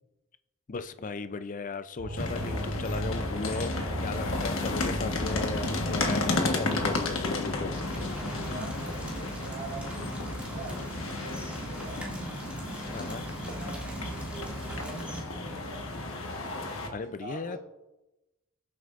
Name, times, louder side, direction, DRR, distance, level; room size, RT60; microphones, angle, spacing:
voice 1, 0.7-3.7 4.0-7.8 12.9-13.2 16.9-17.6, left 4 dB, 35° left, 11 dB, 0.4 m, -36 dB
sound 1, 2.0-13.6 14.0-14.1, equal, 55° right, 3.3 m, -38 dB
sound 2, 2.2-16.9, left 2 dB, 60° left, 1.4 m, -33 dB
sound 3, 7.7-15.2, right 1 dB, 5° right, 2.2 m, -40 dB
voice 2, 8.2-12.0 12.9-15.9 17.0-17.6, right 2 dB, 30° right, -3 dB, 2.1 m, -45 dB
19.0 x 7.8 x 2.5 m, 1.0 s
head